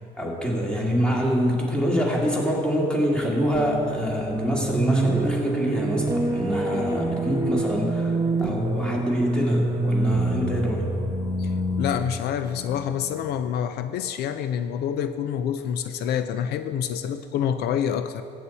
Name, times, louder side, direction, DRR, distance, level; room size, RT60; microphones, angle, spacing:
voice 1, 0.0-10.9, equal, 5° left, -2 dB, 2.3 m, -25 dB
sound 1, 3.5-13.4, right 2 dB, 20° right, 1.4 m, -27 dB
voice 2, 11.4-18.2, left 9 dB, 70° left, 10 dB, 0.5 m, -27 dB
14.5 x 8.5 x 4.2 m, 2.6 s
cardioid pair, 110°, 17 cm